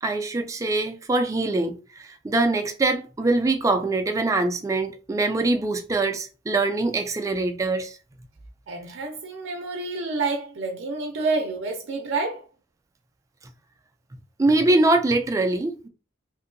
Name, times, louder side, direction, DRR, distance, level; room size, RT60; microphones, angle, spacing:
voice 1, 0.0-8.0 14.4-15.9, right 2 dB, 15° right, 0.3 m, -23 dB
voice 2, 8.7-12.5, right 3 dB, 75° right, 0.5 m, -28 dB
2.8 x 2.6 x 2.6 m
head